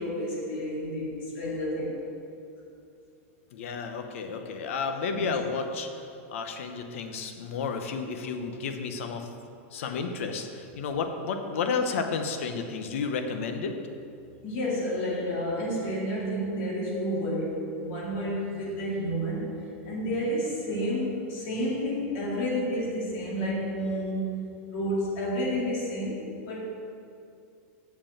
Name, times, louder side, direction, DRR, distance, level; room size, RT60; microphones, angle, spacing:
voice 1, 0.0-2.0 5.1-5.3 14.4-24.4 24.7-26.6, equal, 50° left, -4 dB, 2.3 m, -30 dB
voice 2, 3.5-9.3 9.7-13.8, left 5 dB, 65° left, 6 dB, 0.8 m, -32 dB
7.0 x 5.3 x 7.2 m, 2.5 s
supercardioid pair, 175°, 7 cm